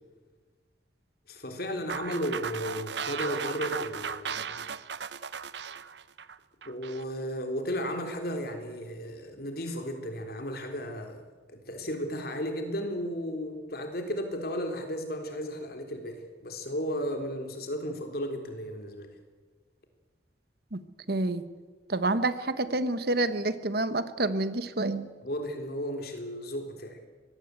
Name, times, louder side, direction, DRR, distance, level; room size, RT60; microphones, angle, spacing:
voice 1, 1.3-4.6 6.6-11.2 11.5-19.1 25.2-27.1, equal, 55° left, 5 dB, 3.7 m, -34 dB
sound 1, 1.9-7.0, right 6 dB, 75° right, 0.9 m, -36 dB
voice 2, 21.1-21.4 21.9-25.1, right 2 dB, 60° right, 12 dB, 1.3 m, -28 dB
24.5 x 19.5 x 8.3 m, 1.4 s
head